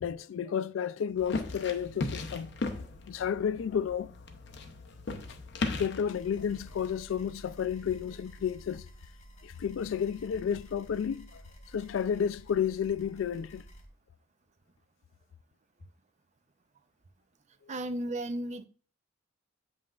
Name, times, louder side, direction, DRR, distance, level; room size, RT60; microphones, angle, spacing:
voice 1, 0.0-2.5 3.1-4.1 5.7-8.9 9.4-11.4 11.7-13.6, left 8 dB, 80° left, 0.3 m, -31 dB
sound 1, 1.2-6.9, left 3 dB, 65° left, 0.8 m, -37 dB
sound 2, 6.0-13.9, right 1 dB, 35° left, 1.1 m, -52 dB
voice 2, 17.7-18.7, right 1 dB, 40° right, 0.5 m, -34 dB
7.5 x 5.6 x 2.4 m
head